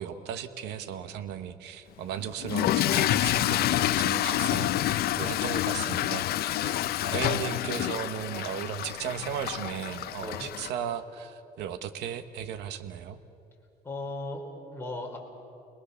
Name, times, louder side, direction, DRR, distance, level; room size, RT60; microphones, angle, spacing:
voice 1, 0.0-6.3 6.6-6.8 7.1-13.2, right 9 dB, 85° right, 10 dB, 1.2 m, -36 dB
Toilet flush / Fill (with liquid), 2.4-10.7, left 14 dB, 65° left, 0.6 m, -28 dB
voice 2, 13.8-15.2, left 2 dB, 15° left, -1 dB, 4.2 m, -37 dB
29.5 x 20.5 x 6.9 m, 2.7 s
cardioid pair, 110°, 17 cm